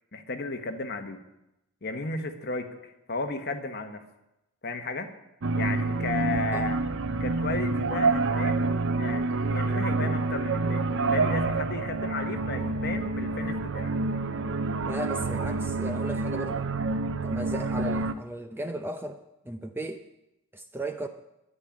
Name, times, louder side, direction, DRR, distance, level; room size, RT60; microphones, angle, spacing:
voice 1, 0.1-1.2 1.8-4.0 4.6-5.1 5.5-6.8 7.2-8.7 9.0-14.0, left 3 dB, 45° left, 6 dB, 1.2 m, -34 dB
sound 1, 5.4-18.1, right 3 dB, 55° right, 0.5 m, -28 dB
voice 2, 14.9-16.6 17.2-20.0 20.5-21.1, right 1 dB, 10° right, 7 dB, 0.5 m, -35 dB
10.0 x 9.7 x 8.5 m, 0.90 s
head